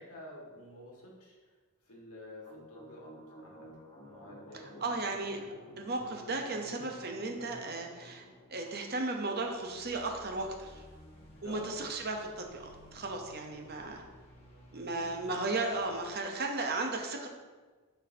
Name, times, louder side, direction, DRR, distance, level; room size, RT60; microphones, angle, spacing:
voice 1, 0.0-1.5 1.8-3.7 4.0-4.9 11.4-11.7 14.8-15.4, left 1 dB, 90° left, -3 dB, 1.6 m, -50 dB
sound 1, 2.4-16.2, equal, 25° left, 1.2 m, -54 dB
voice 2, 4.8-5.5 5.8-8.2 8.5-10.8 11.4-14.0 14.7-17.3, right 2 dB, 45° right, 3 dB, 0.8 m, -35 dB
11.0 x 4.2 x 2.7 m, 1.4 s
head